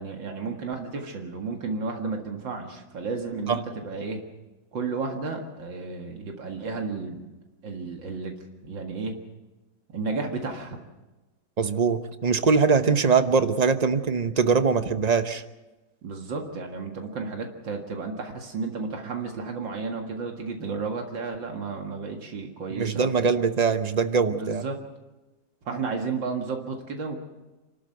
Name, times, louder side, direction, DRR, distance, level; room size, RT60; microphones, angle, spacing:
voice 1, 0.0-4.2 4.7-7.2 7.6-8.3 8.6-9.1 9.9-10.8 16.0-23.1 24.3-24.8 25.7-27.2, right 4 dB, 80° right, 2 dB, 2.6 m, -32 dB
voice 2, 11.6-15.4 22.7-24.7, right 5 dB, 35° right, 10 dB, 0.6 m, -22 dB
27.5 x 13.0 x 8.0 m, 1.1 s
omnidirectional pair, 2.0 m